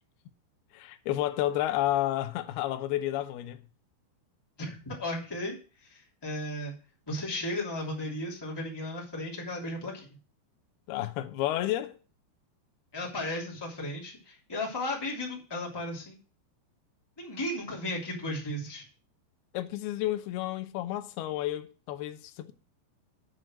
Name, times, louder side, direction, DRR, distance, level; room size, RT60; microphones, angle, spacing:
voice 1, 0.7-3.6 10.9-12.0 19.5-22.5, left 14 dB, 85° left, 2.3 m, -31 dB
voice 2, 4.6-5.5 5.8-6.7 7.1-10.1 12.9-16.2 17.2-18.8, left 1 dB, 10° left, 1.6 m, -35 dB
9.4 x 6.2 x 6.3 m
omnidirectional pair, 5.6 m